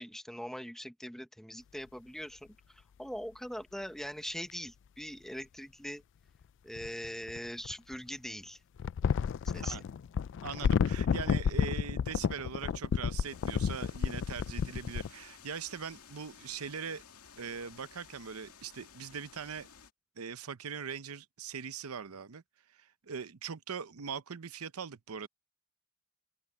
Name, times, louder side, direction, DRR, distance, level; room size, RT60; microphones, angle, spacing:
voice 1, 0.0-6.0 6.6-8.6 9.5-9.8, equal, ahead, 1.1 m, -42 dB
sound 1, 4.5-4.6 6.8-7.9 8.8-15.1, left 7 dB, 60° left, 0.3 m, -31 dB
voice 2, 9.5-9.9 10.4-17.0 17.4-19.7 20.2-22.4 22.7-25.3, right 6 dB, 80° right, 0.7 m, -41 dB
sound 2, 13.2-19.9, left 7 dB, 80° left, 2.2 m, -55 dB
open air
head